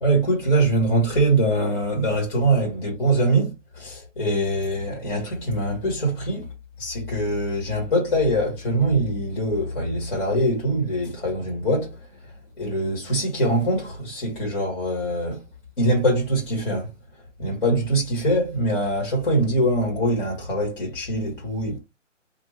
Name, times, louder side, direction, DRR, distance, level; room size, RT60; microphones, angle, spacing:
voice 1, 0.0-6.5 6.8-12.1 12.6-15.4 15.8-16.9 17.4-21.8, right 1 dB, 45° left, 1.5 m, -23 dB
2.6 x 2.4 x 3.3 m
hypercardioid pair, 165°, 37 cm